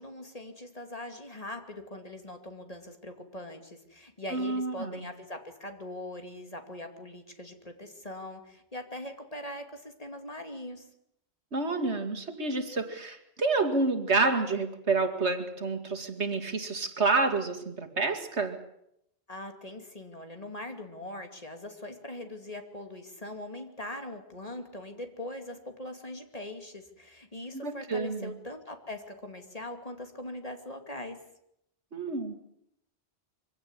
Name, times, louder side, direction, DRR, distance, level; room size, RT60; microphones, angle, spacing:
voice 1, 0.0-10.9 19.3-31.2, left 1 dB, 35° left, 5 dB, 2.8 m, -41 dB
voice 2, 4.3-5.0 11.5-18.6 27.5-28.3 31.9-32.4, right 3 dB, 80° right, 6 dB, 2.6 m, -29 dB
24.0 x 17.0 x 9.9 m, 0.77 s
omnidirectional pair, 1.1 m